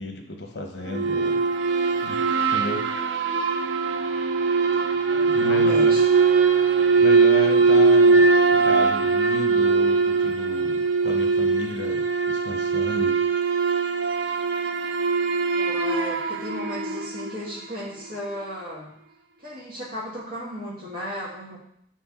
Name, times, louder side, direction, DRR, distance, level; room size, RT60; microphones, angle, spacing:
voice 1, 0.0-1.4 2.0-2.2 2.5-2.8 5.3-6.0 7.0-13.2, left 1 dB, 70° left, 4 dB, 1.0 m, -33 dB
sound 1, 0.9-17.5, right 4 dB, 85° right, 0.5 m, -21 dB
voice 2, 5.1-6.0 15.6-18.9 19.4-21.6, equal, 55° right, -5 dB, 2.0 m, -35 dB
5.8 x 4.3 x 4.2 m, 0.71 s
head